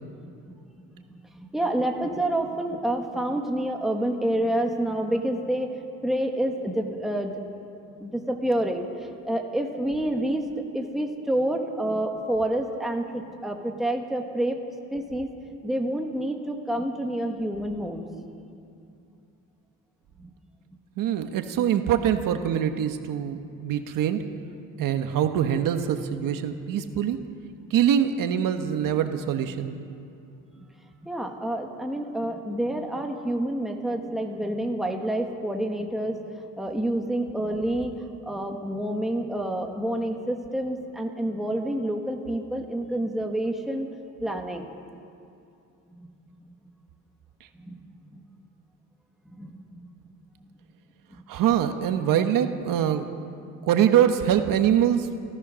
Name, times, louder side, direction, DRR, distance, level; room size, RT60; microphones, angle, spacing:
voice 1, 0.2-0.5 1.3-5.7 6.0-7.3 8.0-10.4 10.7-14.6 14.9-15.3 15.6-18.1 20.2-20.3 31.0-36.2 36.6-37.9 38.2-43.9 44.2-44.7 45.9-46.1 46.5-46.6 47.6-47.8 48.1-48.2 49.4-49.8 51.1-51.2, right 1 dB, ahead, 2 dB, 1.4 m, -28 dB
voice 2, 21.0-24.3 24.8-27.2 27.7-29.7 51.3-53.1 53.6-55.1, right 9 dB, 85° right, 7 dB, 1.4 m, -24 dB
29.5 x 14.0 x 6.4 m, 2.6 s
cardioid pair, 175°, 32 cm